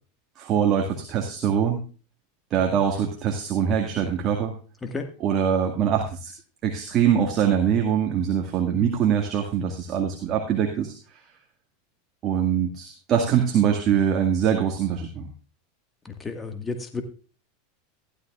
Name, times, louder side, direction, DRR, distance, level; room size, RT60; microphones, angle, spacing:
voice 1, 0.4-1.8 2.5-4.5 5.2-6.3 6.6-10.9 12.2-15.3, right 8 dB, 40° right, 2 dB, 2.0 m, -23 dB
voice 2, 16.2-17.0, left 4 dB, 20° left, 5 dB, 1.8 m, -31 dB
15.0 x 12.5 x 2.5 m, 0.36 s
hypercardioid pair, 100°, 0 cm